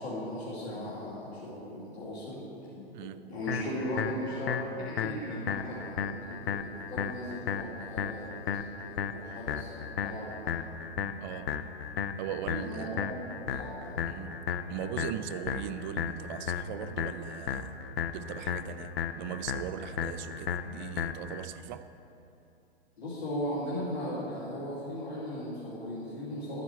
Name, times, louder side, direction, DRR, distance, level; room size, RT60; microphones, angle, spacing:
voice 1, 0.0-2.4 3.3-10.4 12.6-14.0 23.0-26.6, equal, 85° left, 2.6 m, -37 dB
sound 1, 0.5-3.4 3.8-7.4 7.8-8.4, left 4 dB, 55° left, 1.6 m, -50 dB
voice 2, 2.9-3.3 11.2-11.6 12.2-13.0 14.0-21.9, right 9 dB, 50° right, 0.5 m, -39 dB
sound 2, 3.5-21.5, left 7 dB, 70° left, 0.6 m, -35 dB
12.0 x 9.3 x 4.4 m
hypercardioid pair, 105°, 31 cm